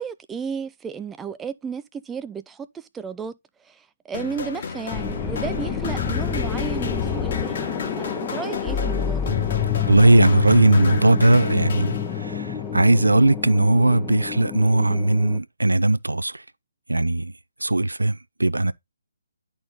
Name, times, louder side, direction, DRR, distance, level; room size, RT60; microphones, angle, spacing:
voice 1, 0.0-9.3, right 6 dB, 10° right, 0.4 m, -33 dB
sound 1, 4.1-12.5, left 5 dB, 45° left, 2.0 m, -34 dB
sound 2, 4.9-15.4, left 8 dB, 15° left, 0.8 m, -27 dB
voice 2, 9.8-16.4 16.9-17.3 17.6-18.7, right 2 dB, 75° right, 0.5 m, -18 dB
10.5 x 4.3 x 3.8 m
figure-of-eight pair, 140°, 0 cm